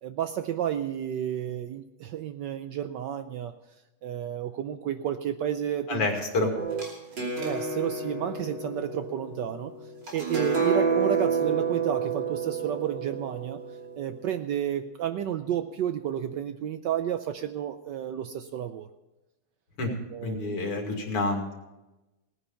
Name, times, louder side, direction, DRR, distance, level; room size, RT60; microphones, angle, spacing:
voice 1, 0.0-3.5 4.0-6.1 6.4-6.5 7.4-9.7 10.1-13.6 14.0-18.9 19.8-20.6, right 10 dB, 75° right, 9 dB, 1.0 m, -31 dB
voice 2, 5.9-6.5 19.8-19.9 20.2-21.5, left 3 dB, 85° left, 2 dB, 3.4 m, -28 dB
sound 1, 6.5-14.3, right 5 dB, 50° right, 3.6 m, -30 dB
17.5 x 9.8 x 5.7 m, 1.0 s
omnidirectional pair, 2.4 m